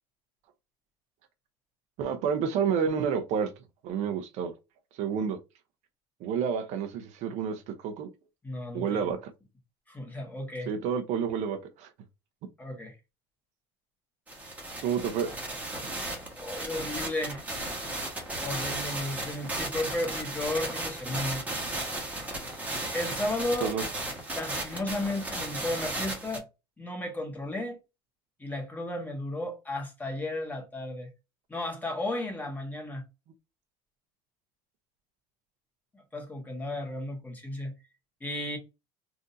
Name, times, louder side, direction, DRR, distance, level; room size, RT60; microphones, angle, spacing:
voice 1, 2.0-3.5 3.8-4.5 5.0-5.4 6.2-8.1 8.7-9.3 10.7-11.9 14.8-15.3 15.8-15.9 23.6-23.8, right 7 dB, 60° right, 0.7 m, -29 dB
voice 2, 8.4-9.0 9.9-10.7 12.6-12.9 16.3-17.4 18.4-21.5 22.9-23.7 24.3-26.5 26.8-27.8 28.4-31.1 31.5-33.0 35.9-37.7 38.2-38.6, left 1 dB, 15° left, 1.3 m, -34 dB
sound 1, 14.3-26.4, right 2 dB, 10° right, 1.3 m, -35 dB
3.7 x 2.7 x 2.6 m
supercardioid pair, 115°, 14 cm